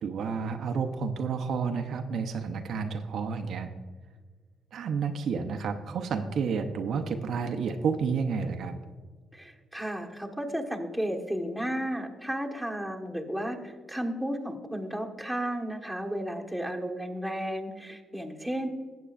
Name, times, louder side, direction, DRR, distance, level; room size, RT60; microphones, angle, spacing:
voice 1, 0.0-3.7 4.7-8.8, right 5 dB, 65° right, 6 dB, 0.6 m, -30 dB
voice 2, 9.3-18.7, equal, 5° left, 0 dB, 1.4 m, -33 dB
15.0 x 8.2 x 2.5 m, 1.5 s
cardioid pair, 90°, 0 cm